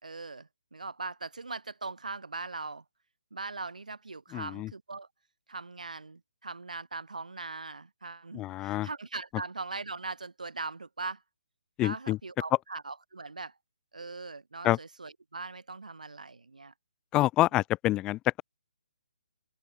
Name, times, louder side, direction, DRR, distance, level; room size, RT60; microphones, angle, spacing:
voice 1, 0.0-2.8 3.3-5.1 5.5-11.2 11.8-13.5 13.9-16.7, right 3 dB, 70° right, 5.2 m, -40 dB
voice 2, 4.3-4.7 8.3-8.9 11.8-12.2 14.6-14.8 17.1-18.4, left 16 dB, 15° left, 0.9 m, -27 dB
figure-of-eight pair, 140°, 4 cm